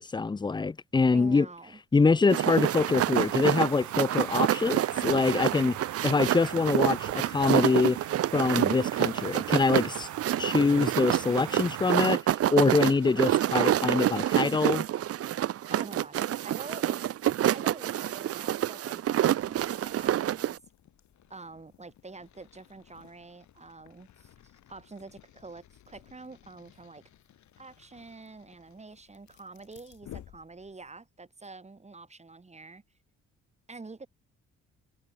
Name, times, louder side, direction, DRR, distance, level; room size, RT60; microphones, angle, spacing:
voice 1, 0.0-1.5 1.9-5.8 6.0-8.0 8.3-10.1 10.4-12.2 12.5-14.9, left 4 dB, 15° left, 0.6 m, -25 dB
voice 2, 1.1-1.8 15.7-17.0 17.4-20.6 21.3-27.0 27.6-32.8 33.7-34.1, right 3 dB, 20° right, 4.6 m, -47 dB
sound 1, 2.3-20.6, right 12 dB, 50° right, 0.6 m, -27 dB
sound 2, 2.6-12.1, right 13 dB, 75° right, 1.7 m, -40 dB
sound 3, 19.4-31.0, left 12 dB, 70° left, 2.2 m, -55 dB
cardioid pair, 90°, 30 cm